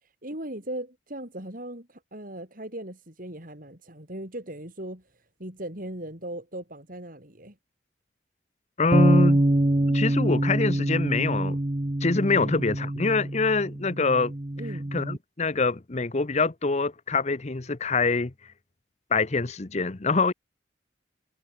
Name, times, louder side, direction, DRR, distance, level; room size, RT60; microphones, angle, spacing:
voice 1, 0.0-7.6 12.4-12.6 14.6-14.9, right 1 dB, 45° right, 5.9 m, -38 dB
voice 2, 8.8-9.4 9.9-11.6 12.0-14.3 14.9-18.3 19.1-20.3, left 3 dB, 35° left, 0.8 m, -25 dB
sound 1, 8.9-15.2, right 1 dB, 30° right, 0.9 m, -25 dB
head